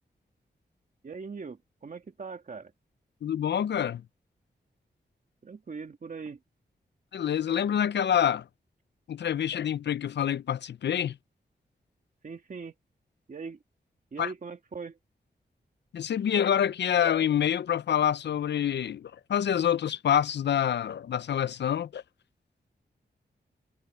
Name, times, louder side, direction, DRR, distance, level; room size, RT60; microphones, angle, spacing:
voice 1, 1.0-2.7 5.4-6.4 12.2-12.7 13.3-13.6 14.1-15.0, right 5 dB, 50° right, 2.1 m, -40 dB
voice 2, 3.2-4.0 7.1-8.5 9.1-11.2 14.2-14.3 15.9-22.0, left 9 dB, 75° left, 0.5 m, -27 dB
wide cardioid pair, 170°, 18 cm